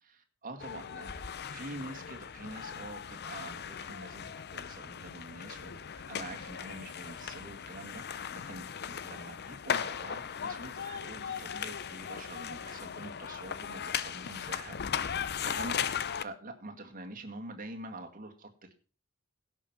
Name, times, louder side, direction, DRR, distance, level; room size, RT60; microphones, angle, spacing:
voice 1, 0.0-14.8 15.1-18.7, right 2 dB, 40° right, 4 dB, 2.0 m, -46 dB
sound 1, 0.6-16.2, left 8 dB, 50° left, 0.7 m, -38 dB
sound 2, 1.0-9.7, left 1 dB, 90° left, 3.8 m, -59 dB
16.5 x 6.5 x 5.9 m, 0.37 s
head